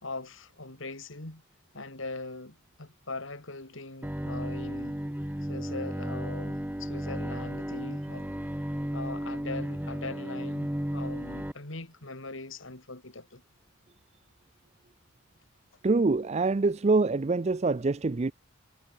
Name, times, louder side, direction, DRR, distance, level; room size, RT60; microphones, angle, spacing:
voice 1, 0.0-1.4 1.7-5.0 5.4-8.3 8.9-13.4, left 3 dB, 70° left, 3.1 m, -41 dB
Bowed string instrument, 4.0-11.5, equal, 10° right, 1.2 m, -34 dB
voice 2, 15.8-18.3, right 3 dB, 30° right, 0.4 m, -25 dB
head